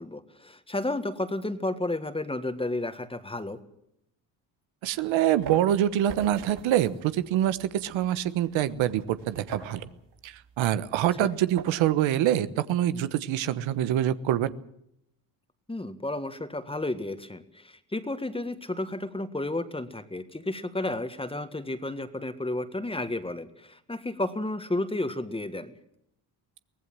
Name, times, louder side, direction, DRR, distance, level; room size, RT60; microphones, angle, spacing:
voice 1, 0.0-3.6 11.2-11.3 15.7-25.7, left 2 dB, 10° left, 10 dB, 1.8 m, -32 dB
voice 2, 4.8-9.8 10.2-14.5, right 12 dB, 85° right, 13 dB, 1.3 m, -25 dB
sound 1, 5.0-12.1, right 7 dB, 65° right, 6.4 m, -44 dB
23.5 x 17.5 x 7.6 m, 0.77 s
cardioid pair, 105°, 45 cm